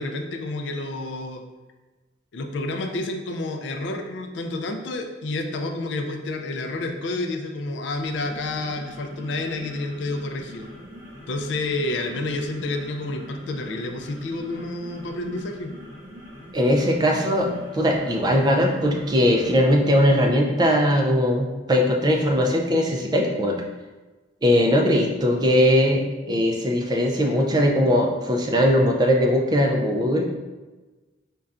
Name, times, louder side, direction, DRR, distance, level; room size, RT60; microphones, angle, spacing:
voice 1, 0.0-1.4 2.3-10.7 11.3-15.7, left 2 dB, 75° left, 4 dB, 0.4 m, -29 dB
sound 1, 7.9-19.9, equal, 85° right, 1.5 m, -43 dB
voice 2, 16.5-23.6 24.4-30.3, equal, 20° right, 1 dB, 0.3 m, -20 dB
5.3 x 2.2 x 2.4 m, 1.2 s
head